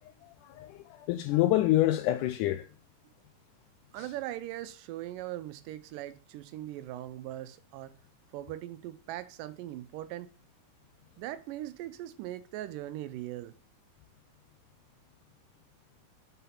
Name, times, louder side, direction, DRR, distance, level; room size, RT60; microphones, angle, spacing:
voice 1, 0.2-0.8 1.1-2.7, left 15 dB, 80° left, 1.9 m, -26 dB
voice 2, 3.9-7.9 8.3-10.3 11.2-13.5, right 14 dB, 80° right, 2.2 m, -40 dB
5.7 x 5.6 x 5.6 m
omnidirectional pair, 3.9 m